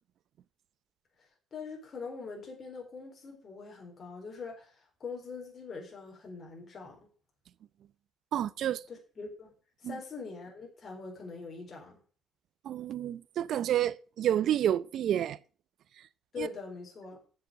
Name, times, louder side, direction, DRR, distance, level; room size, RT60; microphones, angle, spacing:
voice 1, 1.2-7.1 8.9-9.5 9.8-12.0 16.3-17.2, left 4 dB, 40° left, 4.0 m, -43 dB
voice 2, 8.3-8.8 9.8-10.0 12.6-15.4 16.4-16.5, right 11 dB, 65° right, 0.6 m, -29 dB
7.5 x 7.1 x 7.8 m
cardioid pair, 105°, 0 cm